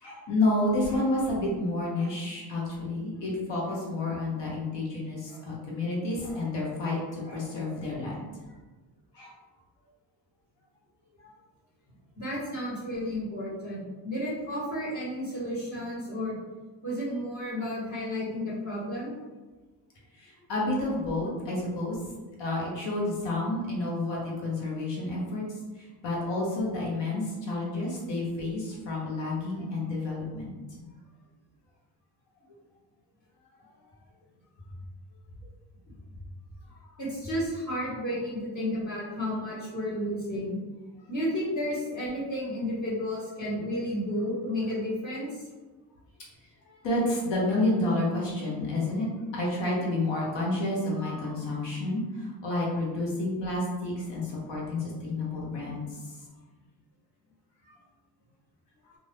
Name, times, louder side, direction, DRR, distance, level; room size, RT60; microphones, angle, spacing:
voice 1, 0.0-8.2 9.1-9.3 11.2-11.3 20.2-22.0 22.4-25.4 25.8-30.5 30.8-30.9 36.7-36.8 46.6-56.0 57.6-57.7 58.9-59.0, left 2 dB, 75° left, -4 dB, 1.2 m, -30 dB
voice 2, 12.2-16.4 16.8-19.1 37.0-40.6 41.1-45.3, equal, 40° left, -8 dB, 1.4 m, -32 dB
2.6 x 2.5 x 3.4 m, 1.3 s
cardioid pair, 100°, 43 cm